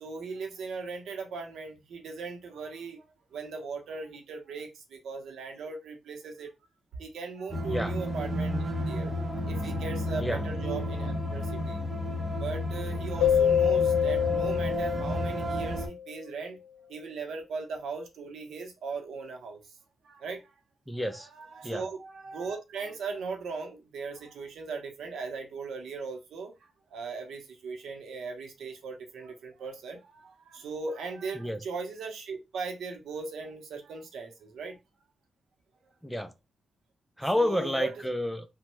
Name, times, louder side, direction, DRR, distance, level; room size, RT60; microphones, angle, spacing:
voice 1, 0.0-3.0 3.3-6.5 7.0-11.8 12.4-16.6 16.9-19.6 20.0-20.4 21.6-26.5 26.9-34.8 37.3-37.9, right 4 dB, 90° right, 0.7 m, -38 dB
sound 1, 7.5-15.9, left 1 dB, 25° right, 0.7 m, -32 dB
Keyboard (musical), 13.2-15.9, left 8 dB, 80° left, 0.6 m, -26 dB
voice 2, 20.9-21.3 21.6-21.9 31.3-31.6 36.0-36.3 37.2-38.5, equal, ahead, 0.3 m, -29 dB
3.1 x 2.1 x 3.0 m
cardioid pair, 120°, 0 cm